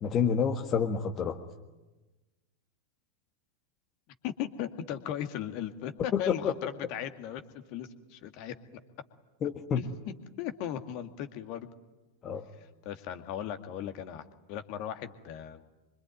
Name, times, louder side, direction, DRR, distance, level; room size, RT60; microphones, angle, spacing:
voice 1, 0.0-1.4 6.1-6.2 9.4-9.8 12.2-12.4, left 7 dB, 30° left, 4 dB, 1.7 m, -28 dB
voice 2, 4.2-7.4 7.7-8.6 9.8-11.7 12.9-15.6, left 10 dB, 45° left, 8 dB, 2.1 m, -37 dB
25.5 x 25.0 x 9.3 m, 1.1 s
figure-of-eight pair, 90°, 0 cm